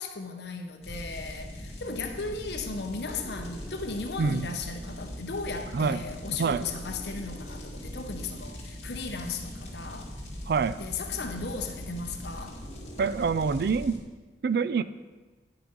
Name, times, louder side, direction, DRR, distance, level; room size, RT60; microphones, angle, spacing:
voice 1, 0.0-10.1 10.8-12.6, left 3 dB, 70° left, 4 dB, 0.8 m, -36 dB
sound 1, 0.8-14.0, equal, 35° left, 2.1 m, -41 dB
voice 2, 10.5-10.8 13.0-14.0 14.4-14.8, right 5 dB, 60° right, 14 dB, 0.3 m, -26 dB
9.8 x 5.9 x 5.3 m, 1.3 s
head